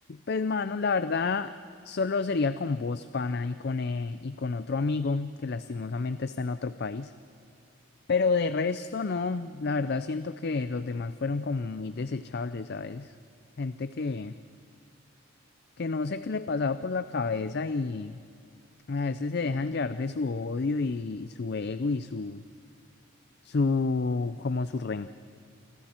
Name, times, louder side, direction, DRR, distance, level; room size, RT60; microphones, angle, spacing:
voice 1, 0.3-1.5 1.8-7.1 8.1-13.1 13.6-14.3 15.8-18.2 18.9-22.4 23.4-25.1, left 4 dB, 50° left, 12 dB, 0.4 m, -29 dB
29.0 x 25.5 x 4.4 m, 2.5 s
head